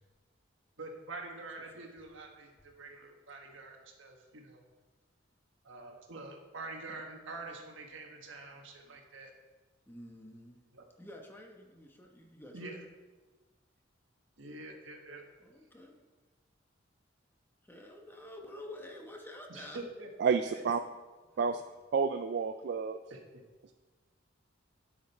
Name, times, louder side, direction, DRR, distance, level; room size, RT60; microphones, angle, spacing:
voice 1, 0.8-4.6 5.6-9.3 10.7-10.8 12.5-12.8 14.4-15.2 19.5-20.1 23.1-23.4, right 2 dB, 75° right, 2 dB, 1.5 m, -46 dB
voice 2, 9.9-10.6 11.0-12.9 15.4-16.0 17.6-19.9 20.5-20.6, left 1 dB, 10° left, 2 dB, 1.0 m, -49 dB
voice 3, 20.2-20.8 21.4-21.6 21.9-23.0, right 5 dB, 55° right, 8 dB, 0.3 m, -29 dB
10.0 x 6.6 x 4.2 m, 1.3 s
head